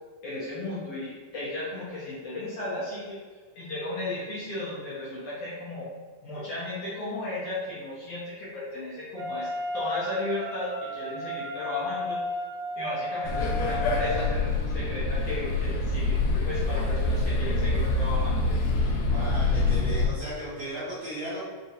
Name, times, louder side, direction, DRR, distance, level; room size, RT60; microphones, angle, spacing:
voice 1, 0.2-3.2 3.5-5.9 6.2-12.2 12.8-16.2 16.5-18.6, left 2 dB, 65° left, -8 dB, 1.7 m, -35 dB
Wind instrument woodwind instrument, 9.1-14.4, left 1 dB, 50° right, 2.0 m, -34 dB
sound 1, 13.2-20.1, left 2 dB, 85° left, 2.3 m, -26 dB
voice 2, 18.9-21.4, right 1 dB, 75° right, -8 dB, 1.4 m, -36 dB
5.5 x 3.0 x 2.7 m, 1.5 s
omnidirectional pair, 3.7 m